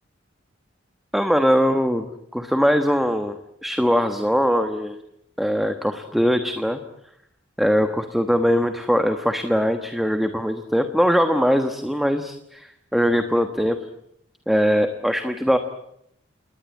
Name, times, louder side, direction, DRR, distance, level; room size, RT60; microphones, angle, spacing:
voice 1, 1.1-2.1 2.3-5.0 5.4-6.8 7.6-13.8 14.5-15.6, equal, ahead, 7 dB, 1.2 m, -21 dB
29.5 x 20.0 x 8.4 m, 0.76 s
head